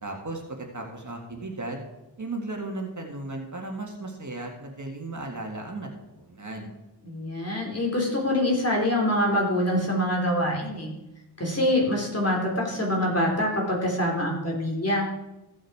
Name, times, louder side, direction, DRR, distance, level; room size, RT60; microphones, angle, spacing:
voice 1, 0.0-1.8 2.2-5.9 6.2-6.7, right 2 dB, 45° right, 1 dB, 1.8 m, -35 dB
voice 2, 7.0-10.9 11.4-15.1, left 1 dB, 35° left, -2 dB, 3.3 m, -25 dB
15.0 x 6.3 x 4.7 m, 0.96 s
wide cardioid pair, 80°, 42 cm